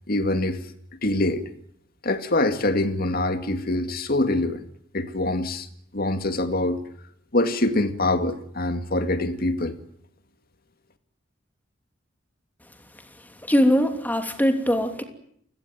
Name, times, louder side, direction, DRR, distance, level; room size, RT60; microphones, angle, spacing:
voice 1, 0.1-0.6 1.0-1.5 2.0-4.6 4.9-5.7 5.9-6.8 7.3-9.8, left 2 dB, 50° left, 9 dB, 2.2 m, -24 dB
voice 2, 13.5-15.0, equal, 10° left, 6 dB, 2.9 m, -21 dB
30.0 x 17.5 x 9.4 m, 0.69 s
head